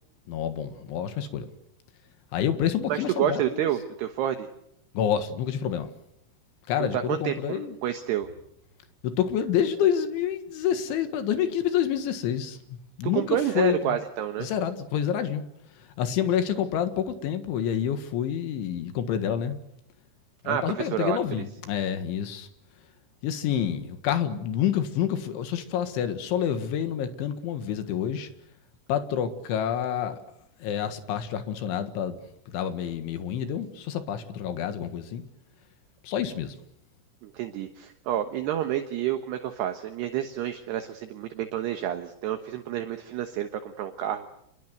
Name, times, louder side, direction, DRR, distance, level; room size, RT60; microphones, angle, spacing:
voice 1, 0.3-1.5 2.3-3.7 4.9-5.9 6.7-7.8 9.0-14.0 14.4-15.4 15.7-19.6 20.4-22.5 23.2-28.3 28.9-30.2 30.6-32.2 32.5-35.2 36.0-36.6, left 9 dB, 75° left, 4.0 m, -28 dB
voice 2, 2.9-4.5 6.8-8.3 13.1-14.5 20.5-21.2 37.2-44.3, right 10 dB, 70° right, 3.0 m, -29 dB
28.5 x 21.0 x 8.1 m
omnidirectional pair, 5.7 m